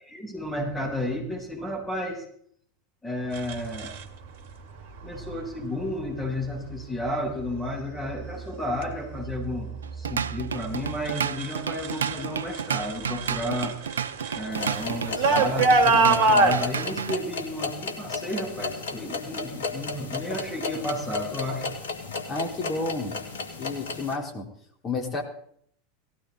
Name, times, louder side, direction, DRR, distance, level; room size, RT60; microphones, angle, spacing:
voice 1, 0.0-2.2 3.0-3.9 5.0-13.7 14.3-21.7, left 1 dB, 10° left, -1 dB, 8.0 m, -32 dB
sound 1, 3.3-4.0 5.2-5.5 6.0-6.5 7.1-7.6 7.9-12.2 12.5-16.6, right 3 dB, 60° right, 2.1 m, -25 dB
Drum kit / Drum, 9.8-17.2, right 7 dB, 75° right, 0.5 m, -31 dB
sound 2, 14.5-24.2, left 4 dB, 70° left, 2.5 m, -34 dB
voice 2, 22.3-23.2 23.6-24.5 24.8-25.2, left 3 dB, 30° left, 2 dB, 4.1 m, -31 dB
18.5 x 16.5 x 4.1 m, 0.64 s
figure-of-eight pair, 85°, 0 cm